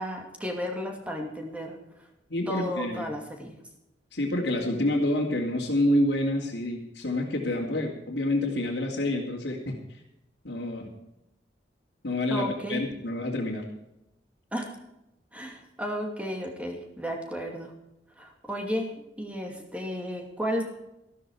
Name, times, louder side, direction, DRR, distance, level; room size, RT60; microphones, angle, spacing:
voice 1, 0.0-2.1 2.5-3.6 12.3-12.8 14.5-14.7 15.3-17.7 18.2-18.9 19.2-20.6, equal, 5° right, 2 dB, 2.6 m, -33 dB
voice 2, 2.3-3.1 4.1-9.7 10.4-10.9 12.0-13.6, left 1 dB, 70° left, -5 dB, 2.7 m, -28 dB
14.0 x 13.0 x 4.9 m, 0.89 s
head